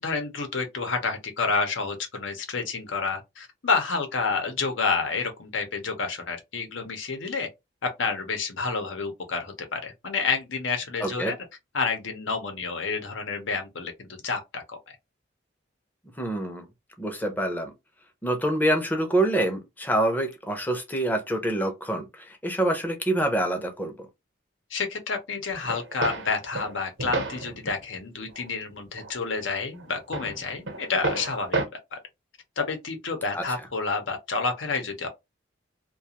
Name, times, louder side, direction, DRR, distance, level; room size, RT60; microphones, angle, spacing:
voice 1, 0.0-7.5 8.0-11.4 11.7-14.8 24.7-31.6 31.9-32.0 32.6-35.1, left 4 dB, 85° left, 0.8 m, -29 dB
voice 2, 11.0-11.3 16.2-16.7 17.0-17.7 18.2-23.9 33.3-33.4, right 1 dB, 10° left, 0.5 m, -26 dB
sound 1, 25.5-27.8 28.3-28.5 29.0-29.5 29.7-31.7, right 2 dB, 80° right, 0.8 m, -31 dB
2.4 x 2.3 x 2.8 m
head